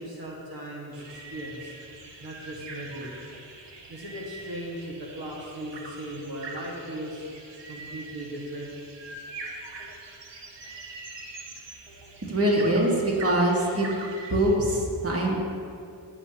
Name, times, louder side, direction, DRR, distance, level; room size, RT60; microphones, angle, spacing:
voice 1, 0.0-1.7 2.2-3.1 3.9-7.2 7.7-8.7, right 1 dB, 55° right, -4 dB, 1.8 m, -37 dB
sound 1, 0.9-14.6, right 3 dB, 75° right, 1.3 m, -43 dB
voice 2, 12.3-13.9 14.3-15.4, right 1 dB, 35° right, -2 dB, 1.8 m, -23 dB
14.5 x 6.9 x 3.0 m, 2.5 s
cardioid pair, 55°, 43 cm